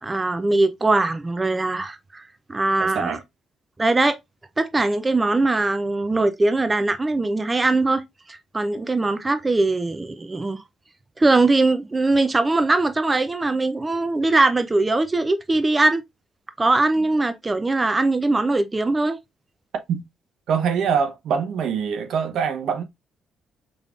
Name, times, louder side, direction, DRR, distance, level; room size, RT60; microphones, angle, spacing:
voice 1, 0.0-3.2 3.8-4.2 4.6-8.0 8.3-10.6 11.2-16.0 16.6-19.2, right 2 dB, 20° right, 0.5 m, -21 dB
voice 2, 2.8-3.2 19.9-20.0 20.5-22.8, right 7 dB, 75° right, 0.9 m, -24 dB
5.2 x 3.6 x 2.4 m
cardioid pair, 90°, 0 cm